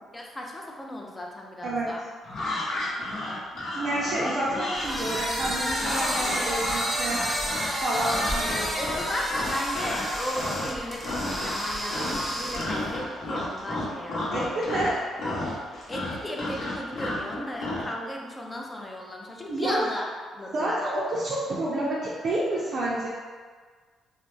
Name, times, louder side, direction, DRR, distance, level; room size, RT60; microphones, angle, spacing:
voice 1, 0.1-2.0 6.1-6.5 8.8-14.7 15.9-20.1 20.4-20.8, left 1 dB, 15° left, -1 dB, 0.4 m, -35 dB
voice 2, 1.6-1.9 3.7-7.2 7.8-8.7 14.3-15.0 19.5-19.9 20.5-23.1, right 1 dB, 60° right, -8 dB, 0.5 m, -29 dB
sound 1, 2.2-10.1 10.3-10.8 11.0-11.6 11.9-17.9, left 1 dB, 60° left, 0.8 m, -32 dB
sound 2, 4.7-12.9, equal, 15° right, 0.7 m, -30 dB
2.4 x 2.0 x 3.0 m, 1.5 s
cardioid pair, 90°, 0 cm